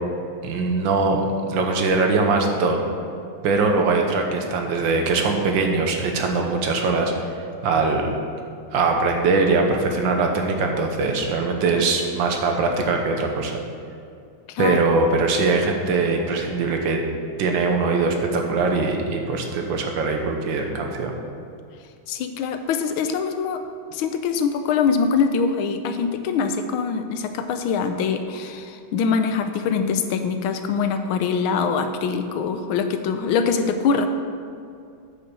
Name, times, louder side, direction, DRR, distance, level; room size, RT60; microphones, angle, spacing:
voice 1, 0.4-2.8 3.4-7.1 7.6-8.1 8.7-13.6 14.6-17.0 17.4-21.1, right 3 dB, 70° right, 3 dB, 1.6 m, -21 dB
voice 2, 14.5-14.8 22.1-23.6 23.9-34.1, left 5 dB, 85° left, 8 dB, 1.5 m, -23 dB
8.4 x 5.5 x 6.1 m, 2.4 s
omnidirectional pair, 2.2 m